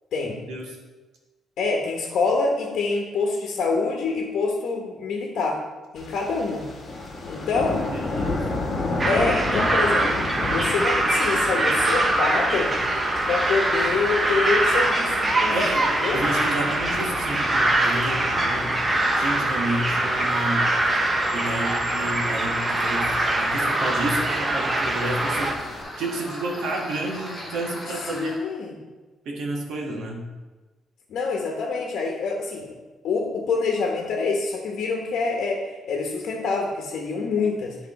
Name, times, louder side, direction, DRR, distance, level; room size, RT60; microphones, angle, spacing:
voice 1, 0.1-0.4 1.6-5.6 5.9-6.7 7.3-7.8 9.1-12.7 13.3-15.6 16.0-16.2 27.9-28.7 31.1-32.7 33.0-37.8, left 4 dB, 60° left, 0 dB, 1.0 m, -26 dB
sound 1, 6.0-25.8, left 2 dB, 30° left, 1.1 m, -34 dB
voice 2, 7.9-8.4 15.5-15.9 16.1-18.7 19.2-20.9 21.3-25.6 26.0-28.3 29.2-30.2, right 2 dB, 75° right, -1 dB, 1.3 m, -30 dB
sound 2, 9.0-25.5, right 2 dB, 15° right, 0.7 m, -23 dB
sound 3, 22.8-28.3, left 1 dB, 5° left, 1.6 m, -37 dB
10.0 x 3.6 x 4.1 m, 1.2 s
cardioid pair, 165°, 0 cm